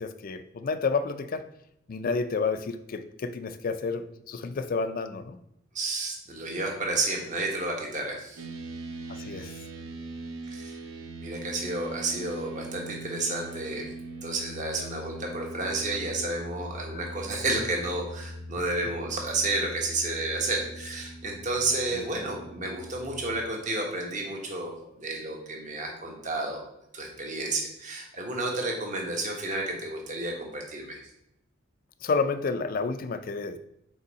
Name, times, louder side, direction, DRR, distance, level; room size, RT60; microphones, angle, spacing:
voice 1, 0.0-1.5 1.9-5.4 9.1-9.6 21.9-22.0 32.0-33.6, left 4 dB, 45° left, 11 dB, 0.4 m, -30 dB
voice 2, 5.7-8.4 10.5-10.8 11.2-13.9 14.2-24.7 25.0-26.6 26.9-31.0, right 2 dB, 40° right, 1 dB, 1.2 m, -31 dB
sound 1, 8.4-23.4, right 1 dB, 85° right, 0.8 m, -41 dB
5.4 x 4.5 x 4.0 m, 0.79 s
head